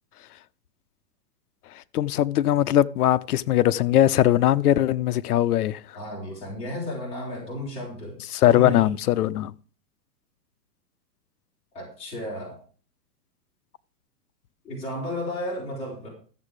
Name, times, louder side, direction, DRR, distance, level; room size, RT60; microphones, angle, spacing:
voice 1, 1.9-5.8 8.3-9.5, left 13 dB, 65° left, 0.7 m, -20 dB
voice 2, 5.9-8.2 8.4-8.9 11.7-12.6 14.6-16.1, left 1 dB, 15° left, 4.4 m, -33 dB
13.5 x 7.4 x 5.0 m
hypercardioid pair, 170°, 49 cm